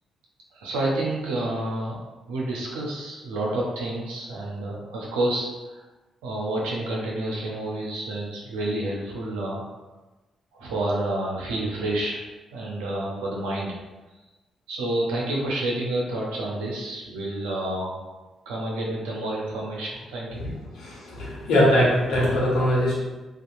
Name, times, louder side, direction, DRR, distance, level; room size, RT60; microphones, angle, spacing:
voice 1, 0.5-2.0 2.3-5.8 6.2-9.6 10.5-12.2 12.5-13.8 14.7-18.0 18.5-20.4, right 1 dB, 85° right, -3 dB, 0.6 m, -29 dB
voice 2, 20.7-22.9, equal, 70° left, -7 dB, 1.1 m, -21 dB
2.7 x 2.3 x 2.5 m, 1.1 s
hypercardioid pair, 45°, 0 cm